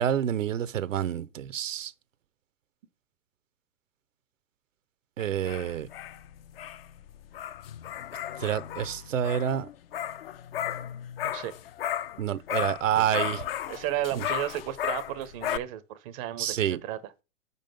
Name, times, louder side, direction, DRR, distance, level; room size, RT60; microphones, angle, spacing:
voice 1, 0.0-1.9 5.2-5.9 8.4-9.7 12.2-13.4 14.1-14.2 16.4-16.8, right 10 dB, 70° right, 0.6 m, -28 dB
sound 1, 5.2-12.2 12.5-15.6, left 11 dB, 50° left, 0.5 m, -35 dB
voice 2, 11.2-11.5 13.0-13.3 13.7-17.1, right 12 dB, 25° right, 0.5 m, -34 dB
5.4 x 5.1 x 5.2 m
figure-of-eight pair, 110°, 39 cm